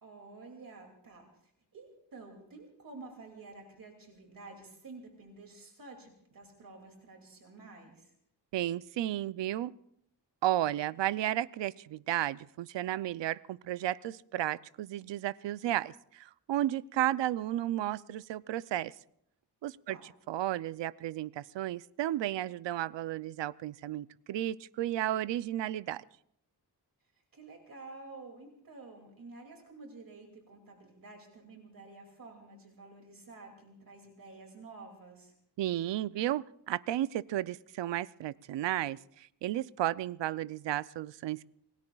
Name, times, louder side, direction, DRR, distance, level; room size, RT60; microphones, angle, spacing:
voice 1, 0.0-8.1 19.9-20.0 27.3-35.3, right 3 dB, 50° right, 2 dB, 2.5 m, -50 dB
voice 2, 8.5-9.7 10.4-18.9 19.6-20.0 20.3-26.0 35.6-41.4, right 13 dB, 85° right, 18 dB, 0.5 m, -33 dB
27.0 x 19.5 x 2.3 m, 0.72 s
wide cardioid pair, 160°, 43 cm